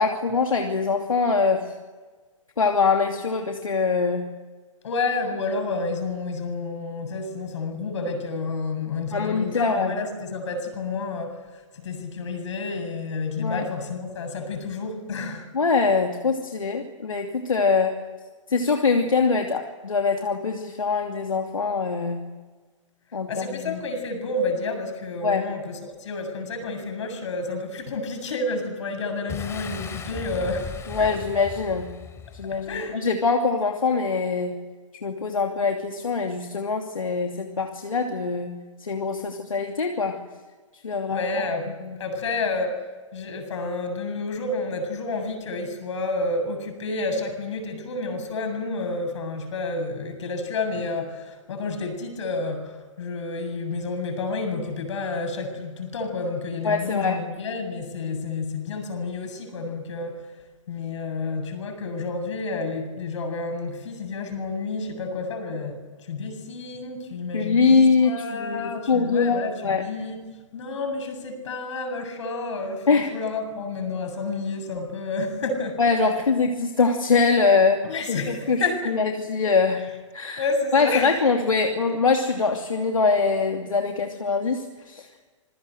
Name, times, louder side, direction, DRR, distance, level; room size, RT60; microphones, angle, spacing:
voice 1, 0.0-1.7 2.6-4.2 9.1-10.0 13.4-13.7 15.5-18.0 18.5-22.2 23.1-23.8 25.2-25.4 30.9-31.9 32.3-34.5 35.0-38.5 38.8-40.2 40.8-41.3 41.8-42.0 56.6-57.2 67.3-69.8 72.9-73.1 75.8-77.8 78.3-79.8 80.1-80.4 80.7-85.1, left 4 dB, 80° left, 4 dB, 2.8 m, -23 dB
voice 2, 4.8-11.4 11.8-15.5 23.3-31.1 32.7-33.0 40.9-60.2 60.7-70.2 70.5-75.8 77.8-78.9 80.4-81.1, left 3 dB, 60° left, 7 dB, 7.7 m, -30 dB
Boom, 29.3-32.9, left 6 dB, 15° left, 3.2 m, -37 dB
27.0 x 22.5 x 7.9 m, 1.3 s
figure-of-eight pair, 115°, 17 cm